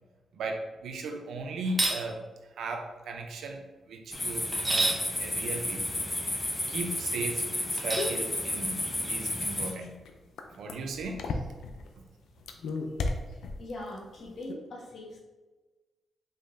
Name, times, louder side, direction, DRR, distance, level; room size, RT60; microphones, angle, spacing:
voice 1, 0.4-2.3 2.6-3.6 3.9-5.8 6.7-8.8 9.1-10.0 10.5-11.4, right 2 dB, 80° right, 4 dB, 0.6 m, -37 dB
sound 1, 1.7-2.0 4.5-5.0 7.8-8.2, right 2 dB, 25° right, 0.9 m, -28 dB
sound 2, 4.1-9.7, left 1 dB, 20° left, 0.8 m, -32 dB
sound 3, 8.0-11.9 12.4-13.9 14.2-14.5, left 3 dB, 85° left, 0.5 m, -35 dB
voice 2, 13.6-15.2, left 1 dB, 65° left, -3 dB, 1.4 m, -41 dB
5.2 x 3.7 x 2.7 m, 1.2 s
cardioid pair, 80°, 0 cm